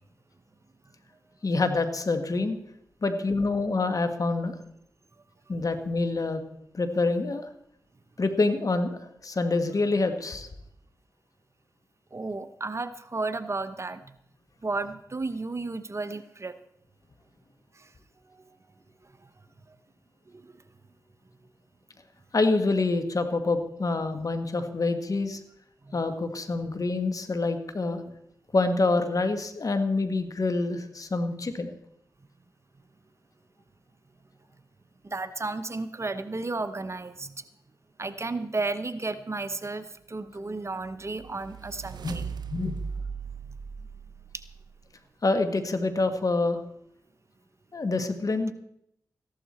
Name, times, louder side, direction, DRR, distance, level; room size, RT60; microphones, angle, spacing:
voice 1, 1.4-2.6 3.0-4.6 5.5-6.4 6.7-7.5 8.2-10.5 22.3-25.4 25.9-28.0 28.5-31.7 42.0-42.8 45.2-46.6 47.7-48.5, left 3 dB, 50° left, 8 dB, 1.6 m, -26 dB
voice 2, 12.1-14.1 14.6-16.5 17.8-17.9 20.3-20.6 25.8-26.0 35.0-37.4 38.0-42.2, right 3 dB, 40° right, 11 dB, 0.9 m, -33 dB
sound 1, 40.6-44.8, right 6 dB, 75° right, 0.6 m, -38 dB
14.5 x 11.5 x 4.4 m, 0.76 s
cardioid pair, 45°, 7 cm